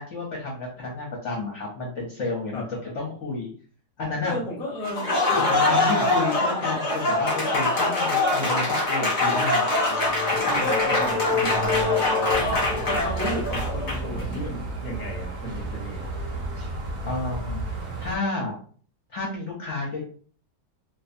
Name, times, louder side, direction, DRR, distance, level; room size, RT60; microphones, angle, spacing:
voice 1, 0.0-3.5 4.0-4.4 5.3-9.7 10.3-11.7 17.0-17.7 18.0-18.5 19.1-20.0, left 3 dB, 60° left, -2 dB, 0.8 m, -31 dB
voice 2, 4.2-5.1 10.4-11.8 12.8-16.1, equal, 5° left, -4 dB, 0.5 m, -34 dB
Applause, 4.8-14.2, left 2 dB, 75° left, 0.4 m, -24 dB
sound 1, 9.2-13.5, left 4 dB, 50° right, 0.8 m, -29 dB
sound 2, 12.3-18.2, right 2 dB, 80° right, 0.4 m, -32 dB
2.5 x 2.2 x 2.5 m, 0.44 s
omnidirectional pair, 1.7 m